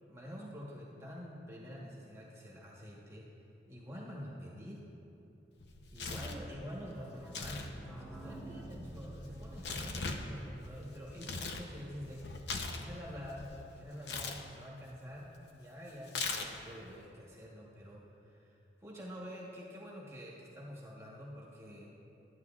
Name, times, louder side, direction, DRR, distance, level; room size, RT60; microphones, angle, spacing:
voice 1, 0.1-3.3 3.7-4.8 5.9-12.3 12.8-18.5 18.8-21.9, equal, 15° right, -5 dB, 1.1 m, -47 dB
Tearing, 5.6-6.5 7.2-7.7 8.0-11.7 12.0-13.5 14.0-14.4 16.1-16.7, left 4 dB, 70° left, 0.7 m, -40 dB
sound 1, 6.6-12.1 12.4-12.5 12.7-12.8 13.1-13.2, right 1 dB, 5° left, 0.5 m, -50 dB
13.5 x 9.2 x 2.4 m, 2.9 s
head